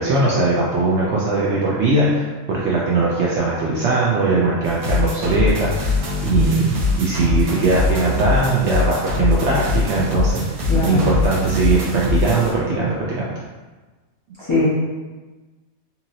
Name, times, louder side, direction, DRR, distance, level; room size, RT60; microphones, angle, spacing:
voice 1, 0.0-13.3, right 3 dB, 65° right, -5 dB, 0.7 m, -20 dB
sound 1, 4.6-12.5, left 3 dB, 85° right, 1.2 m, -22 dB
voice 2, 10.7-11.1 14.5-14.7, left 2 dB, 25° left, -11 dB, 0.8 m, -19 dB
2.8 x 2.8 x 2.6 m, 1.2 s
omnidirectional pair, 1.4 m